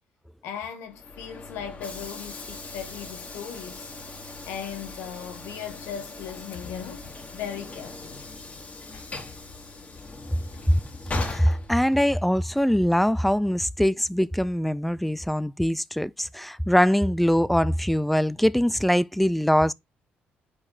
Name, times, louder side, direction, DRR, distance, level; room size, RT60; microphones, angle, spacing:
voice 1, 0.4-3.9 4.5-8.2 8.9-9.4 10.5-10.6, left 8 dB, 90° left, 1.5 m, -38 dB
Train / Sliding door, 0.9-12.3, left 3 dB, 35° left, 2.4 m, -40 dB
voice 2, 11.1-19.7, equal, ahead, 0.4 m, -22 dB
4.9 x 4.9 x 4.1 m
supercardioid pair, 75°, 4 cm